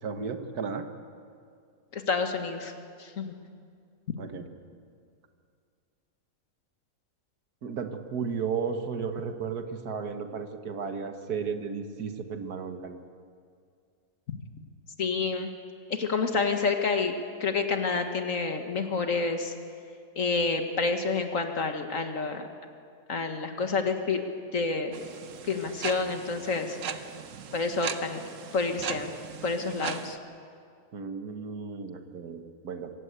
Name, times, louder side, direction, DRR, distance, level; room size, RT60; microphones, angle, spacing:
voice 1, 0.0-0.8 4.2-4.5 7.6-13.0 30.9-32.9, right 6 dB, 75° right, 7 dB, 1.8 m, -34 dB
voice 2, 1.9-2.7 3.0-3.3 14.3-14.4 15.0-15.5 15.9-17.1 17.4-19.5 20.2-22.5 23.1-24.2 24.5-24.9 25.5-26.8 27.5-28.2 28.5-29.1 29.4-30.2, left 4 dB, 55° left, 6 dB, 1.9 m, -28 dB
sound 1, 24.9-30.2, right 7 dB, 60° right, 1.2 m, -38 dB
25.5 x 16.0 x 8.2 m, 2.3 s
omnidirectional pair, 1.7 m